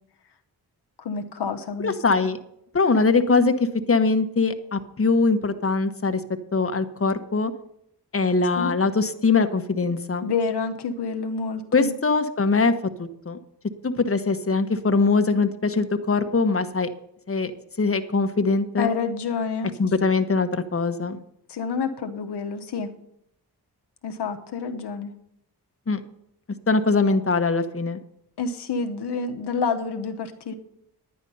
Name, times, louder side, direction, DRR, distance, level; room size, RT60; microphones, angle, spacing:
voice 1, 1.0-1.9 8.6-8.7 10.2-11.9 18.8-19.7 21.5-22.9 24.0-25.1 28.4-30.5, left 5 dB, 85° left, 7 dB, 1.0 m, -28 dB
voice 2, 1.8-2.4 2.7-6.2 6.5-7.5 8.1-10.3 11.7-12.7 13.0-13.4 13.8-16.9 17.3-17.5 17.8-18.9 19.8-21.2 25.9-26.0 26.7-28.0, left 4 dB, 35° left, 8 dB, 1.2 m, -22 dB
10.0 x 10.0 x 5.5 m, 0.75 s
cardioid pair, 50°, 39 cm